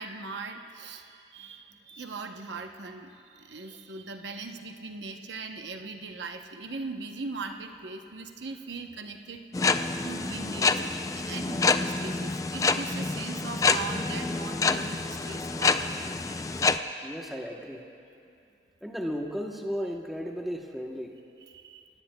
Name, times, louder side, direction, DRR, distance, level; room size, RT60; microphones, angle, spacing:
voice 1, 0.0-9.4 10.0-16.0 21.5-21.8, right 3 dB, 80° right, 4 dB, 0.8 m, -40 dB
sound 1, 9.5-16.8, left 4 dB, 20° left, 0.3 m, -27 dB
voice 2, 17.0-17.8 18.8-21.1 21.4-21.5, equal, ahead, 0 dB, 1.0 m, -35 dB
27.5 x 18.0 x 2.3 m, 2.5 s
head